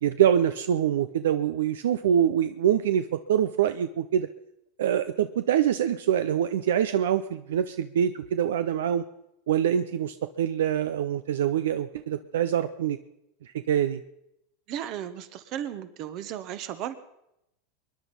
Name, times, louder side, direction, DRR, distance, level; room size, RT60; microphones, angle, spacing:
voice 1, 0.0-4.3 4.8-9.0 9.5-13.0 13.7-14.0, right 9 dB, 80° right, 12 dB, 0.6 m, -25 dB
voice 2, 14.7-16.9, right 10 dB, 50° right, 12 dB, 1.3 m, -35 dB
23.5 x 10.5 x 5.4 m, 0.84 s
hypercardioid pair, 110°, 0 cm